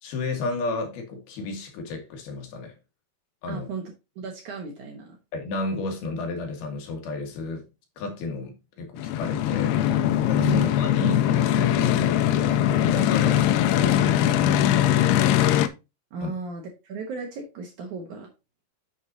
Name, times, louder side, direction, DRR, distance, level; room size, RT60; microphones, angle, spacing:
voice 1, 0.0-2.7 3.4-3.7 5.3-7.7 8.0-9.8 10.2-13.4 13.7-15.1 16.2-16.3, left 3 dB, 70° left, 3.5 m, -32 dB
voice 2, 3.5-3.8 4.2-5.2 10.4-10.8 16.1-18.3, right 4 dB, 60° right, 2.2 m, -35 dB
sound 1, 9.0-15.7, left 11 dB, 85° left, 2.7 m, -21 dB
9.7 x 6.5 x 2.8 m
omnidirectional pair, 4.8 m